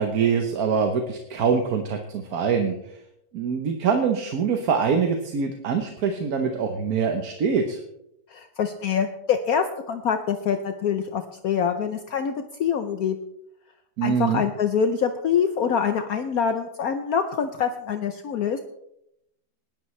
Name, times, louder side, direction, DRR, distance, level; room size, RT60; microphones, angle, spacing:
voice 1, 0.0-2.7 3.3-7.8 14.0-14.4, right 6 dB, 60° right, 5 dB, 1.4 m, -24 dB
voice 2, 8.3-12.3 12.6-13.2 14.0-18.6, left 7 dB, 65° left, 7 dB, 1.1 m, -25 dB
19.5 x 11.0 x 3.2 m, 0.81 s
omnidirectional pair, 1.9 m